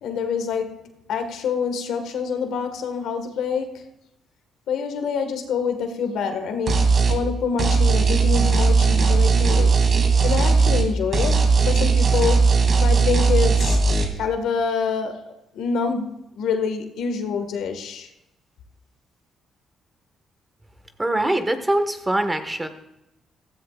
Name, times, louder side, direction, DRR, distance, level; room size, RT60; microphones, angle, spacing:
voice 1, 0.0-3.9 4.7-9.8 10.2-13.8 14.2-15.2 15.5-16.1 16.3-18.1, left 6 dB, 80° left, 6 dB, 1.8 m, -26 dB
sound 1, 6.7-7.2 7.6-10.9 11.1-14.0, right 4 dB, 50° right, 2.6 m, -18 dB
voice 2, 21.0-22.7, right 1 dB, 15° right, 7 dB, 1.6 m, -23 dB
15.5 x 14.5 x 2.5 m, 0.89 s
cardioid pair, 90°, 0 cm